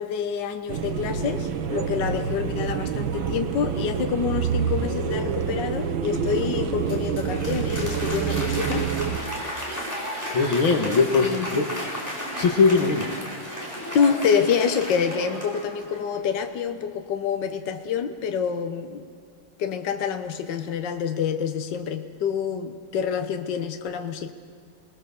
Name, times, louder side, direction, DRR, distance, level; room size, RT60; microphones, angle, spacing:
voice 1, 0.0-8.9 10.9-11.7 13.9-19.1 19.6-24.3, left 7 dB, 65° left, 7 dB, 1.7 m, -27 dB
sound 1, 0.7-9.2, right 7 dB, 80° right, 2.0 m, -27 dB
Applause, 6.6-16.2, equal, 10° left, 4.5 m, -33 dB
voice 2, 10.3-11.3 11.5-11.6 12.4-13.0, left 4 dB, 90° left, 5 dB, 2.5 m, -20 dB
29.0 x 20.5 x 7.1 m, 2.1 s
omnidirectional pair, 2.1 m